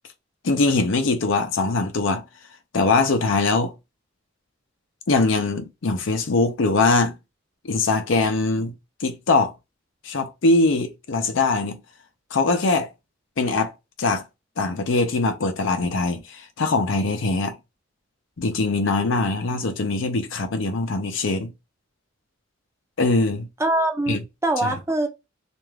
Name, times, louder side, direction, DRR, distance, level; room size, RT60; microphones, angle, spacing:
voice 1, 0.4-2.2 2.7-3.7 5.1-7.1 7.6-8.7 9.0-9.5 10.0-11.8 12.3-12.9 13.4-13.7 14.0-14.2 14.6-17.5 18.4-21.5 23.0-23.5 24.1-24.2 24.6-24.7, left 3 dB, 70° left, 0.6 m, -22 dB
voice 2, 23.6-25.1, right 1 dB, 15° right, 0.5 m, -23 dB
2.4 x 2.3 x 3.2 m
head